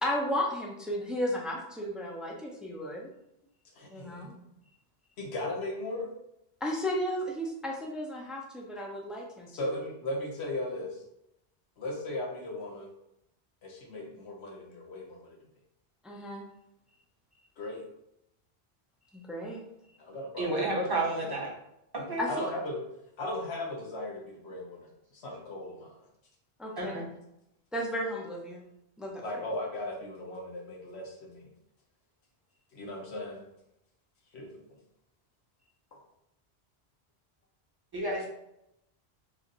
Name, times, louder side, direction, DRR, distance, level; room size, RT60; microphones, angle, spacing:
voice 1, 0.0-3.1 3.9-4.3 6.6-9.7 16.0-16.4 19.1-19.6 22.2-22.3 26.6-27.0 27.7-28.6 29.0-29.5, equal, ahead, -1 dB, 0.4 m, -34 dB
voice 2, 3.8-4.3 5.2-6.1 9.5-11.0 11.8-12.9 13.6-15.4 17.6-17.8 20.0-20.6 22.0-22.9 23.2-24.9 25.1-26.0 29.2-31.5 32.7-33.4 34.3-34.8, left 1 dB, 85° left, 1 dB, 1.1 m, -37 dB
voice 3, 20.4-21.5 22.1-22.2 26.8-27.1 37.9-38.3, right 2 dB, 25° right, -3 dB, 0.8 m, -30 dB
3.1 x 2.5 x 3.8 m, 0.83 s
omnidirectional pair, 1.1 m